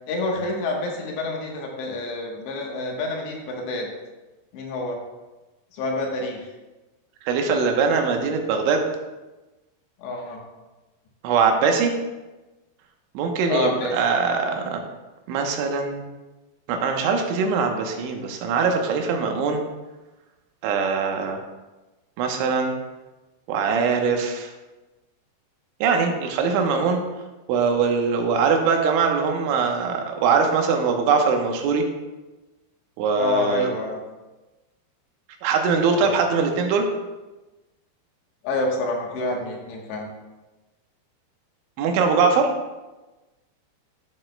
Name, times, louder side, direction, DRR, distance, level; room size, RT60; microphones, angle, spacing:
voice 1, 0.1-3.9 4.5-5.0 5.7-6.4 10.0-10.4 13.5-14.0 33.1-34.0 35.9-36.1 38.4-40.1, left 2 dB, 75° left, 0 dB, 3.2 m, -28 dB
voice 2, 7.3-8.9 11.2-11.9 13.1-14.8 15.3-16.0 16.7-19.6 20.6-21.4 22.2-22.7 23.5-24.5 25.8-27.0 27.5-31.8 33.0-33.7 35.4-36.9 41.8-42.5, right 5 dB, 90° right, 3 dB, 3.3 m, -22 dB
13.0 x 7.6 x 2.2 m, 1.1 s
omnidirectional pair, 5.3 m